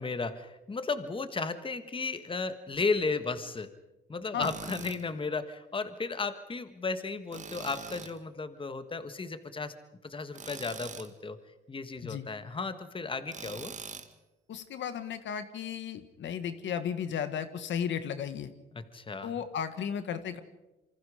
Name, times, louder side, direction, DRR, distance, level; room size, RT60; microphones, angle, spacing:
voice 1, 0.0-3.7 4.1-9.7 10.0-11.4 11.7-13.7 18.7-19.3, left 4 dB, 25° left, 10 dB, 1.5 m, -34 dB
Tools, 4.4-5.0 7.3-8.2 10.3-11.1 13.3-14.1, right 5 dB, 40° right, 1.8 m, -43 dB
voice 2, 14.5-18.5 19.2-20.4, left 8 dB, 70° left, 11 dB, 1.6 m, -34 dB
27.0 x 25.0 x 5.0 m, 1.0 s
cardioid pair, 90°, 20 cm